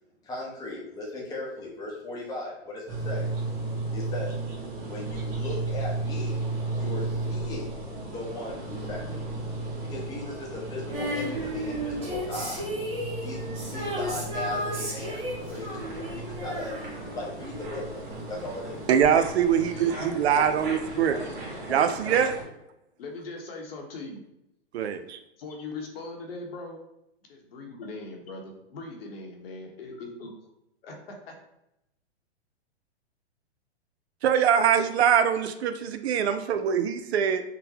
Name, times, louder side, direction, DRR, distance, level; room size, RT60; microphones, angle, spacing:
voice 1, 0.2-3.3 3.9-4.3 4.9-6.5 6.7-7.7 8.1-9.2 9.9-12.6 13.2-15.2 15.5-16.7 17.1-18.8, left 2 dB, 10° left, -3 dB, 0.7 m, -37 dB
sound 1, 2.9-22.4, right 2 dB, 50° right, 1.4 m, -35 dB
Female singing, 10.9-17.9 19.0-19.1, equal, 20° right, 0.9 m, -34 dB
voice 2, 18.9-21.2 21.7-22.3 24.7-25.2 34.2-37.4, right 8 dB, 70° right, 9 dB, 0.5 m, -23 dB
voice 3, 19.6-22.2 23.0-24.2 25.0-25.1 25.4-26.8 27.3-30.3 30.8-31.0 31.3-31.4, left 3 dB, 60° left, 1 dB, 0.9 m, -40 dB
3.8 x 2.1 x 2.8 m, 0.84 s
hypercardioid pair, 140°, 33 cm